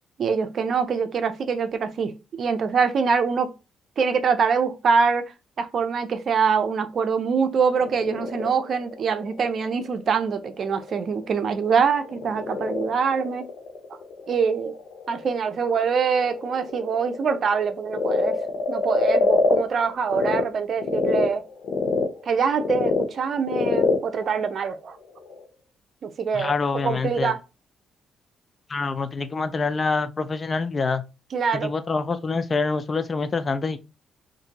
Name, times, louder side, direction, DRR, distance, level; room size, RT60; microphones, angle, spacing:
voice 1, 0.2-3.5 4.0-5.2 5.6-13.5 14.3-14.7 15.1-18.4 18.7-21.4 22.2-25.0 26.0-26.5 26.8-27.4 31.3-31.7, right 5 dB, 55° right, 0.5 m, -24 dB
Frog, 7.5-20.4 20.8-25.4, left 4 dB, 75° left, 0.8 m, -28 dB
voice 2, 26.3-27.3 28.7-31.0 31.5-33.8, left 4 dB, 35° left, 0.4 m, -26 dB
2.7 x 2.6 x 3.9 m
cardioid pair, 90°, 0 cm